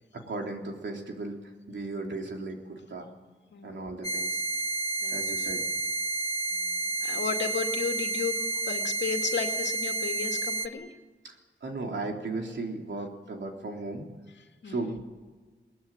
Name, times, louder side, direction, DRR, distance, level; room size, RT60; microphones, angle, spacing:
voice 1, 0.1-3.1 3.6-4.4 5.1-5.6 11.2-11.3 11.6-14.1 14.7-15.0, right 2 dB, 70° right, 2 dB, 3.6 m, -36 dB
voice 2, 3.5-3.9 5.0-5.2 6.5-6.7 7.0-8.4 8.6-10.9 14.6-15.0, left 5 dB, 65° left, 4 dB, 2.5 m, -33 dB
sound 1, 4.0-10.7, right 2 dB, 20° left, 1.3 m, -30 dB
21.5 x 20.5 x 9.1 m, 1.4 s
wide cardioid pair, 135°, 20 cm